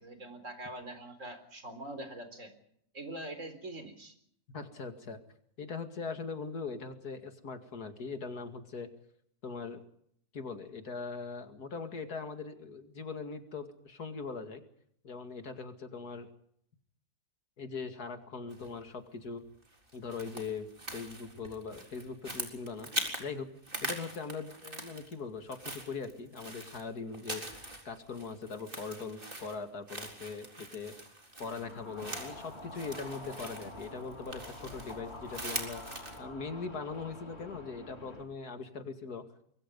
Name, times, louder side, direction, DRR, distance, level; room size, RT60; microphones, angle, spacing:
voice 1, 0.0-2.5 2.9-4.1, right 1 dB, 55° right, 9 dB, 4.4 m, -43 dB
voice 2, 4.5-5.2 5.6-8.9 9.4-9.8 10.3-14.6 15.0-16.3 17.6-19.4 19.9-20.7 20.9-22.9 23.2-23.5 23.8-30.9 31.4-35.8 36.2-39.2, left 4 dB, 85° left, 7 dB, 2.8 m, -41 dB
sound 1, 18.5-18.9 19.6-23.3 23.6-25.2 25.4-36.2, right 1 dB, 35° right, 4.2 m, -42 dB
sound 2, 31.4-38.2, left 1 dB, 45° left, 3.6 m, -47 dB
25.5 x 22.5 x 5.4 m, 0.69 s
omnidirectional pair, 1.6 m